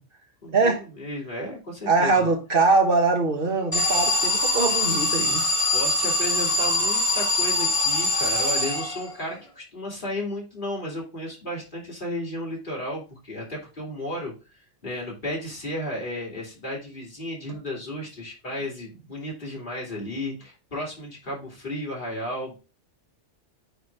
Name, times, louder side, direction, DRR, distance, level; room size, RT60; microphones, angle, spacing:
voice 1, 0.4-2.3 5.7-14.3 14.8-22.5, left 1 dB, 45° left, 2.7 m, -33 dB
voice 2, 1.9-5.4, right 3 dB, 50° right, 1.4 m, -22 dB
Alarm, 3.7-9.3, left 2 dB, 30° left, 2.0 m, -23 dB
9.3 x 3.6 x 3.3 m
omnidirectional pair, 1.2 m